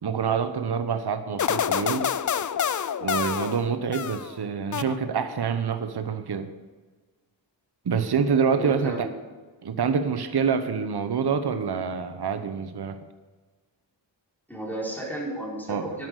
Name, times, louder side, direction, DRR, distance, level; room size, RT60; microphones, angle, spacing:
voice 1, 0.0-2.1 3.0-6.5 7.8-9.1 9.6-13.0 15.7-15.9, right 6 dB, 55° right, 9 dB, 0.9 m, -26 dB
sound 1, 1.4-4.3 4.7-5.4, left 8 dB, 45° left, 0.5 m, -28 dB
voice 2, 8.6-9.1 14.5-16.1, right 1 dB, 5° left, -5 dB, 4.6 m, -33 dB
10.0 x 8.7 x 6.6 m, 1.3 s
wide cardioid pair, 60°, 46 cm